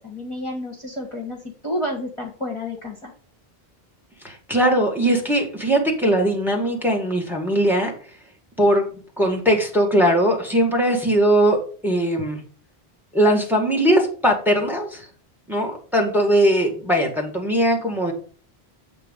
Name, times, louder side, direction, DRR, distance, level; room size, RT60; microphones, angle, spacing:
voice 1, 0.0-3.1, left 1 dB, 30° left, 0 dB, 1.5 m, -30 dB
voice 2, 4.2-7.9 8.6-8.8 9.2-12.4 13.1-15.1 15.5-18.1, right 1 dB, ahead, 1 dB, 1.8 m, -20 dB
8.2 x 3.7 x 5.4 m, 0.39 s
omnidirectional pair, 1.1 m